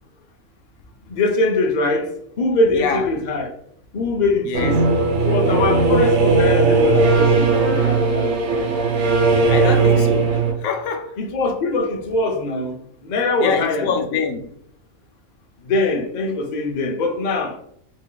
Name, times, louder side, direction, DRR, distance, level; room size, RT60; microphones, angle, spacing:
voice 1, 1.1-2.1 2.4-3.5 3.9-4.8 5.2-8.3 9.3-10.2 11.2-13.9 15.6-17.5, left 2 dB, 55° left, 0.5 m, -22 dB
voice 2, 2.7-3.0 4.5-4.7 9.5-11.2 13.4-14.5, left 6 dB, 80° left, 1.0 m, -25 dB
sound 1, 4.5-10.5, right 3 dB, 80° right, 1.2 m, -17 dB
3.6 x 3.4 x 2.2 m
omnidirectional pair, 1.4 m